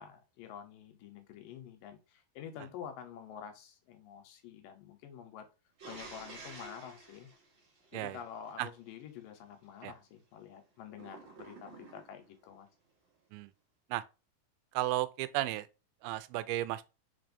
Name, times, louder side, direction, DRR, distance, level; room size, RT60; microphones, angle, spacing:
voice 1, 0.0-5.5 5.9-7.3 7.9-12.7, left 8 dB, 75° left, 2.2 m, -48 dB
sound 1, 5.8-8.5 10.9-12.3, right 3 dB, 45° right, 1.7 m, -51 dB
voice 2, 14.7-15.7 16.0-16.8, right 15 dB, 90° right, 2.4 m, -34 dB
4.7 x 4.4 x 2.5 m
omnidirectional pair, 4.3 m